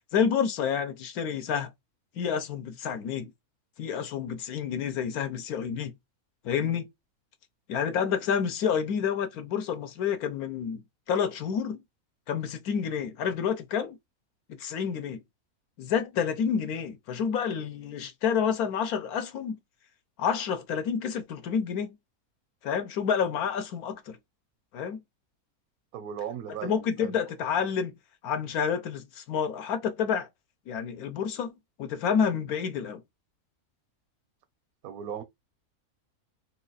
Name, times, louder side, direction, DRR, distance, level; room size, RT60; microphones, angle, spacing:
voice 1, 0.1-1.7 2.1-3.3 3.8-5.9 6.4-6.9 7.7-11.8 12.3-14.0 14.5-15.2 15.8-19.6 20.2-22.0 22.6-24.2 24.7-25.0 26.6-27.9 28.2-30.3 30.7-31.5 31.8-33.0, left 7 dB, 75° left, 1.2 m, -29 dB
voice 2, 25.9-27.2 34.8-35.2, right 9 dB, 75° right, 1.0 m, -37 dB
3.8 x 2.4 x 3.9 m
omnidirectional pair, 1.6 m